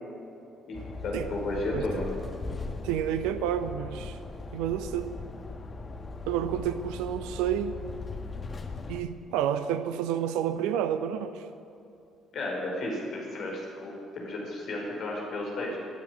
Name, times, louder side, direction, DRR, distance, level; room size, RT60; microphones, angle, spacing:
sound 1, 0.7-9.0, left 3 dB, 30° left, 1.3 m, -39 dB
voice 1, 1.0-2.1 12.3-15.8, left 2 dB, 50° left, -2 dB, 5.0 m, -33 dB
voice 2, 2.8-4.2 4.5-5.2 6.3-7.8 8.9-11.5, right 10 dB, 65° right, 12 dB, 0.7 m, -30 dB
19.0 x 9.6 x 8.0 m, 2.7 s
figure-of-eight pair, 45°, 0 cm